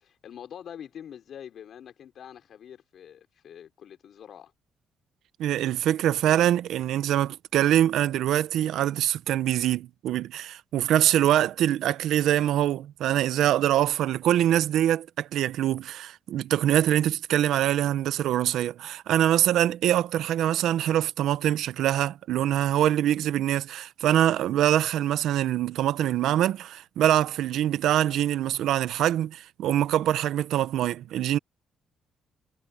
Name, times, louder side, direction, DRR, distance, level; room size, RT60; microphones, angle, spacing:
voice 1, 0.0-4.5, left 9 dB, 65° left, 3.8 m, -45 dB
voice 2, 5.4-31.4, right 12 dB, 80° right, 0.8 m, -24 dB
cardioid pair, 90°, 0 cm